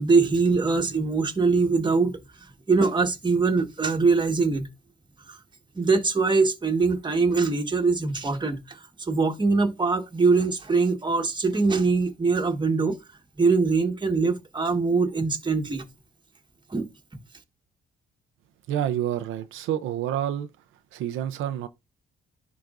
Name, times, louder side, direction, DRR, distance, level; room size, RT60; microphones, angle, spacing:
voice 1, 0.0-2.2 2.7-4.7 5.3-5.4 5.7-13.0 13.4-15.8 16.7-16.9, right 4 dB, 20° right, 1.4 m, -23 dB
voice 2, 18.7-20.5 20.9-21.7, right 11 dB, 90° right, 0.6 m, -28 dB
10.5 x 3.9 x 2.5 m
cardioid pair, 90°, 20 cm